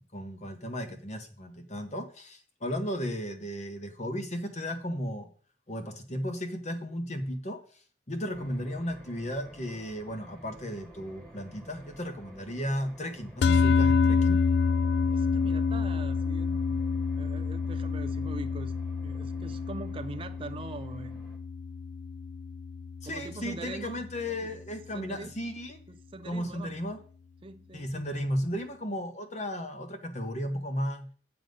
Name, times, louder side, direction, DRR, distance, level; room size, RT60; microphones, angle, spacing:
voice 1, 0.0-5.3 5.7-7.8 8.1-14.4 23.0-25.8 26.2-27.0 27.7-31.1, equal, 35° left, 1.4 m, -35 dB
sound 1, 8.3-21.4, equal, 5° left, 2.0 m, -53 dB
sound 2, 13.4-23.9, left 5 dB, 60° left, 0.3 m, -28 dB
voice 2, 15.1-16.8 17.1-18.7 19.0-21.2 23.0-24.5 24.9-25.4 25.9-26.8 27.4-28.1, right 3 dB, 30° right, 0.4 m, -42 dB
8.0 x 7.5 x 5.3 m
head